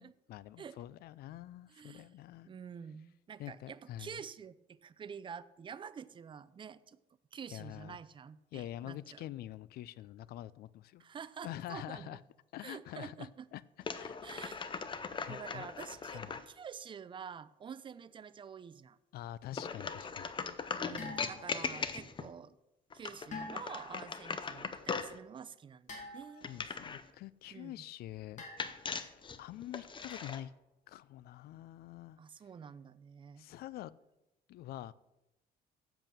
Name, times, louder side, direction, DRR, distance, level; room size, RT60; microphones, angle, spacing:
voice 1, 0.0-2.5 3.4-4.2 7.5-8.0 8.5-11.0 11.4-12.2 12.5-13.6 13.9-14.2 15.2-15.7 16.1-16.4 19.1-20.3 26.5-28.4 28.9-30.5 30.9-32.2 33.4-33.9 34.5-34.9, left 13 dB, 65° left, 19 dB, 0.4 m, -46 dB
voice 2, 1.7-2.2 2.4-7.0 7.3-9.3 11.0-12.2 12.6-13.5 14.2-14.9 15.3-19.0 20.8-22.6 22.9-26.6 27.5-27.7 32.2-33.5, right 7 dB, 30° right, 15 dB, 0.5 m, -48 dB
sound 1, 13.8-16.5 19.5-22.3 22.9-25.2 26.4-27.1 28.6-30.4, left 5 dB, 30° left, 0.7 m, -40 dB
sound 2, 21.0-21.7 23.3-23.9 25.9-26.6 28.4-29.0 30.1-30.4, left 3 dB, 45° left, 2.4 m, -46 dB
7.7 x 7.0 x 6.1 m, 0.94 s
cardioid pair, 110°, 17 cm